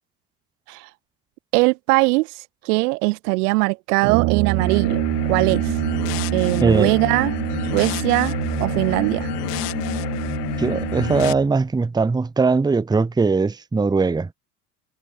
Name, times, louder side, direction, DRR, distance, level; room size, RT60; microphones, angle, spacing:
voice 1, 1.5-2.3 2.6-5.0 5.3-5.7 6.3-7.3 7.7-9.3, right 25 dB, 70° right, 1.0 m, -21 dB
Brass instrument, 4.0-11.5, right 19 dB, 55° right, 2.0 m, -26 dB
sound 1, 4.5-11.3, left 20 dB, 75° left, 1.2 m, -29 dB
voice 2, 6.6-7.0 10.6-14.3, right 4 dB, 10° right, 0.8 m, -20 dB
hypercardioid pair, 75°, 48 cm